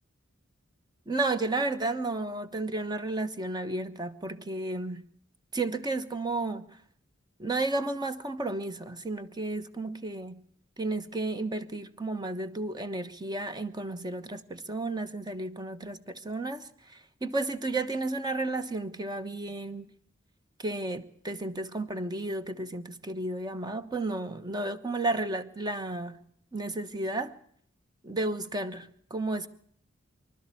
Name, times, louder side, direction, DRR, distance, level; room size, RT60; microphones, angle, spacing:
voice 1, 1.1-5.0 5.5-6.7 7.4-10.4 10.8-19.9 20.6-26.2 26.5-27.4 28.0-29.5, right 2 dB, 20° right, 1.2 m, -32 dB
25.5 x 13.0 x 8.5 m
head